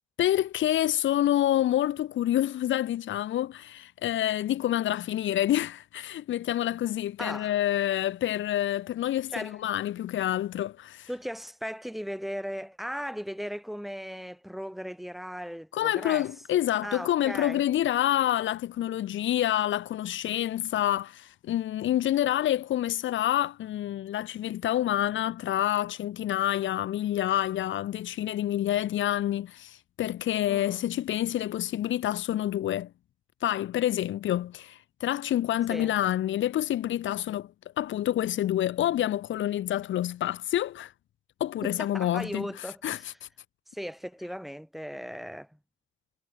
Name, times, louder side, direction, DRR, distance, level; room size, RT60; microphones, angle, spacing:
voice 1, 0.2-11.1 15.7-32.9 33.4-40.9 41.4-42.5 42.8-43.0, left 12 dB, 75° left, 1.8 m, -28 dB
voice 2, 7.2-7.5 9.3-9.6 11.1-17.6 30.5-30.8 35.7-35.9 41.6-43.2 43.7-45.6, equal, ahead, 3.4 m, -37 dB
cardioid pair, 90°, 20 cm